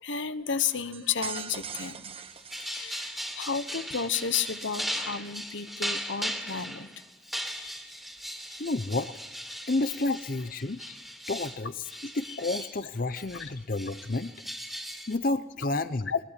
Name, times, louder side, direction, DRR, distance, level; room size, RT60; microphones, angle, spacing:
voice 1, 0.0-2.1 2.6-6.9 7.6-7.7 10.1-10.2 16.1-16.2, left 6 dB, 85° left, 12 dB, 1.2 m, -32 dB
sound 1, 0.9-3.5, right 7 dB, 30° right, 1.4 m, -41 dB
sound 2, 2.3-12.8 13.2-15.2, equal, ahead, 2.8 m, -38 dB
voice 2, 8.6-9.1 9.7-10.8 11.3-14.3 15.1-16.1, left 2 dB, 50° left, 12 dB, 0.8 m, -30 dB
21.0 x 20.5 x 8.4 m, 0.93 s
head